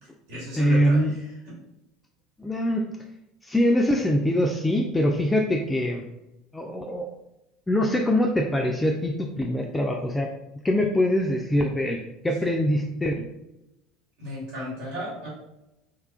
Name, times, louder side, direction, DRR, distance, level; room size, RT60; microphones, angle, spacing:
voice 1, 0.0-1.3 14.2-15.3, equal, 70° right, -7 dB, 1.3 m, -35 dB
voice 2, 0.6-1.1 2.4-2.9 3.4-6.1 6.5-7.1 7.7-10.3 10.6-13.3, equal, 15° left, 1 dB, 0.3 m, -23 dB
3.0 x 2.3 x 2.4 m, 0.90 s
hypercardioid pair, 80°, 0 cm